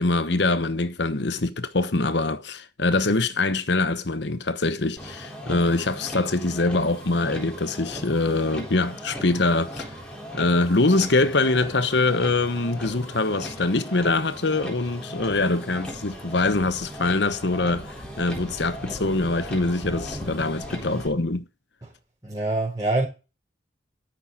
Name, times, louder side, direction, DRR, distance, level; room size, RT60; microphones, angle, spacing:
voice 1, 0.0-9.9 10.3-21.4, left 2 dB, 65° left, 1.1 m, -24 dB
Motor vehicle (road), 5.0-21.1, equal, 5° left, 3.8 m, -38 dB
voice 2, 22.2-23.1, right 2 dB, 20° right, 4.2 m, -25 dB
13.0 x 6.0 x 7.4 m
head